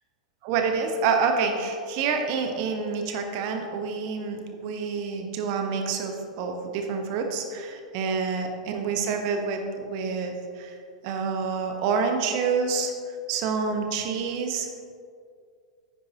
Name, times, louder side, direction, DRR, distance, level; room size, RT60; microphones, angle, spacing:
voice 1, 0.4-10.8 11.0-12.9 13.3-14.8, right 5 dB, 45° right, 4 dB, 1.2 m, -27 dB
9.7 x 9.3 x 3.0 m, 2.2 s
figure-of-eight pair, 95°, 3 cm